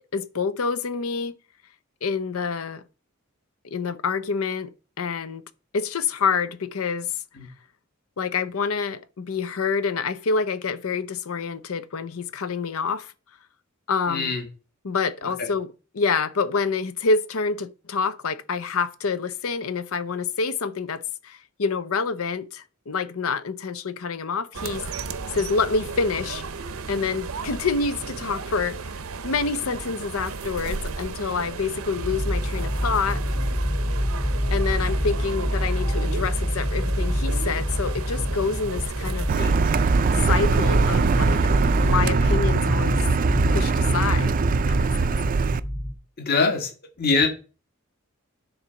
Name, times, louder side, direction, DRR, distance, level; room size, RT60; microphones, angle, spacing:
voice 1, 0.1-1.3 2.0-2.8 3.6-4.7 5.0-5.4 5.7-7.1 8.2-13.1 13.9-14.3 14.8-15.7 15.9-24.8 25.3-26.4 26.9-28.8 29.2-33.2 34.5-39.3 40.3-41.4 41.8-43.0 43.5-44.3 44.7-45.1, left 4 dB, 85° left, 0.7 m, -27 dB
voice 2, 14.1-14.5 15.4-15.5 34.8-34.9 39.4-39.5 42.1-42.3 46.2-46.7 47.0-47.3, left 4 dB, 50° left, 1.8 m, -24 dB
sound 1, 24.5-42.0, right 4 dB, 80° right, 0.7 m, -34 dB
sound 2, 31.9-45.9, equal, 30° left, 2.3 m, -26 dB
Car, 39.3-45.6, right 4 dB, 40° right, 0.4 m, -22 dB
9.9 x 4.0 x 5.7 m
head